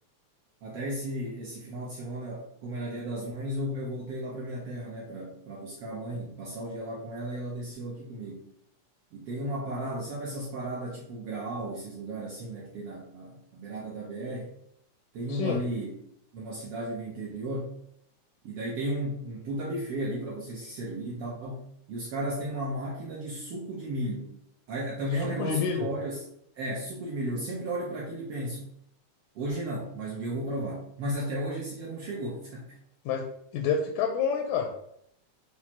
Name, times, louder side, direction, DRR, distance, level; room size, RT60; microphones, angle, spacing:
voice 1, 0.6-8.5 9.1-14.5 15.1-15.9 16.3-17.7 18.4-24.4 24.7-26.2 26.5-28.7 29.3-32.7, right 1 dB, 80° right, -3 dB, 1.3 m, -34 dB
voice 2, 15.3-15.6 25.4-25.9 33.1-33.3 33.5-34.7, left 6 dB, 80° left, 3 dB, 2.0 m, -28 dB
5.9 x 2.0 x 4.2 m, 0.72 s
omnidirectional pair, 3.6 m